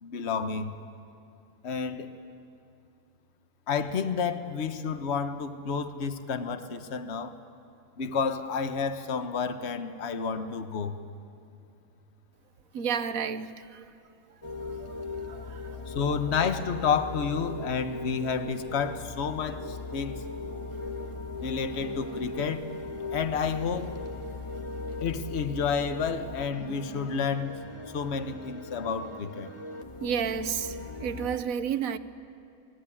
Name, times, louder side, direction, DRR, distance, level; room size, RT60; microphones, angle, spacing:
voice 1, 0.0-0.8 1.6-2.1 3.7-7.4 8.0-11.0 15.9-20.2 21.3-22.6 23.1-23.9 25.0-27.6 27.9-29.5, left 6 dB, 55° left, 1.3 m, -30 dB
voice 2, 12.7-13.8 14.8-14.9 15.3-15.8 30.0-32.0, right 7 dB, 80° right, 1.3 m, -31 dB
sound 1, 14.4-31.4, left 3 dB, 25° left, 1.3 m, -39 dB
27.5 x 21.0 x 9.8 m
omnidirectional pair, 1.4 m